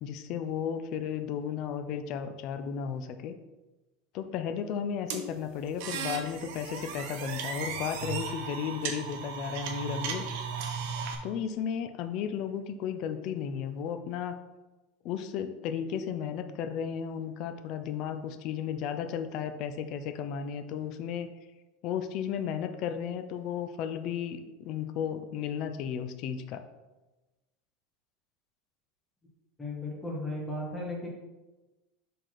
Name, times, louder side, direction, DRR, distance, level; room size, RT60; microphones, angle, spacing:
voice 1, 0.0-3.3 4.1-10.2 11.2-14.4 15.0-21.3 21.8-26.6, left 8 dB, 50° left, 8 dB, 0.5 m, -34 dB
sound 1, 5.1-11.1, right 6 dB, 65° right, 1.0 m, -36 dB
voice 2, 29.6-31.1, left 1 dB, 10° left, -2 dB, 1.5 m, -35 dB
5.1 x 4.0 x 5.9 m, 1.1 s
supercardioid pair, 145°, 0 cm